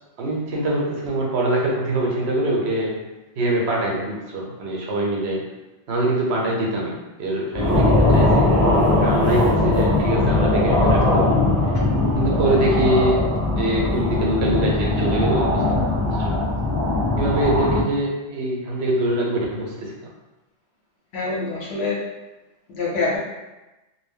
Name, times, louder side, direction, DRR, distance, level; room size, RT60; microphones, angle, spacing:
voice 1, 0.2-3.1 3.3-5.5 5.9-8.6 9.0-11.3 11.6-11.7 12.2-16.4 17.2-20.1, right 1 dB, 75° right, -2 dB, 0.9 m, -24 dB
sound 1, 7.5-17.8, left 2 dB, 20° right, 0.6 m, -20 dB
voice 2, 21.1-22.0 22.7-23.2, left 3 dB, 75° left, -4 dB, 1.0 m, -25 dB
2.2 x 2.1 x 3.5 m, 1.1 s
omnidirectional pair, 1.1 m